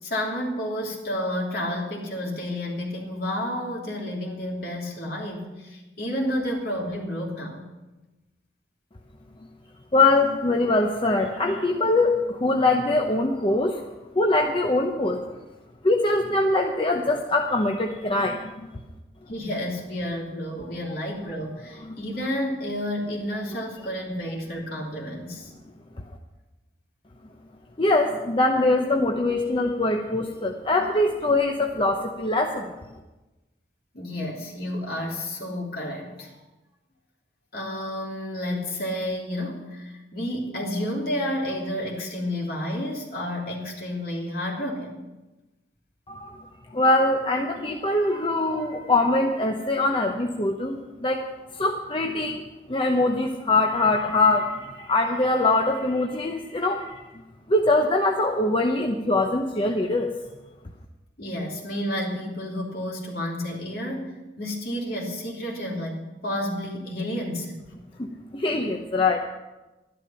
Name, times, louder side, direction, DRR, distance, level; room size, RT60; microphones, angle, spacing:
voice 1, 0.0-7.7 19.3-25.5 33.9-36.4 37.5-45.0 61.2-67.6, left 1 dB, 55° left, -2 dB, 3.2 m, -30 dB
voice 2, 9.9-13.8 14.1-15.3 15.8-18.7 21.8-22.0 27.8-32.9 46.1-51.2 51.5-57.1 57.5-60.1 68.0-68.1 68.3-69.2, left 2 dB, 30° left, 2 dB, 0.8 m, -23 dB
12.0 x 11.5 x 5.8 m, 1.1 s
head